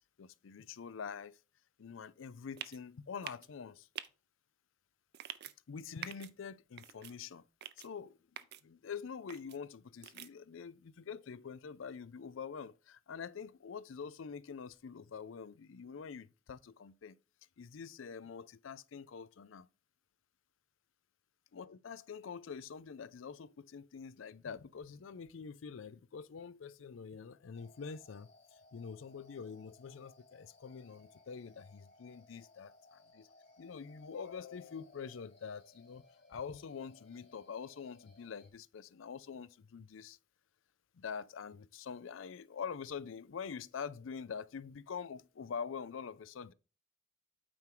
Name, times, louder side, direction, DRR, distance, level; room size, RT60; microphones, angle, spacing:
voice 1, 0.2-1.4 1.8-3.9 5.7-7.4 7.8-8.2 8.6-17.2 17.6-19.7 21.5-28.3 28.7-33.3 33.6-36.0 36.3-40.2 40.9-46.5, left 6 dB, 85° left, 0.5 m, -45 dB
sound 1, 2.6-2.8 3.2-3.5 4.0-4.1 5.1-5.5 6.0-6.3 6.8-7.1 7.6-7.9 8.4-8.6 9.3-9.6 10.0-10.3, right 11 dB, 55° right, 0.5 m, -45 dB
sound 2, 27.5-38.5, left 2 dB, 60° left, 2.6 m, -63 dB
8.8 x 4.5 x 3.8 m
head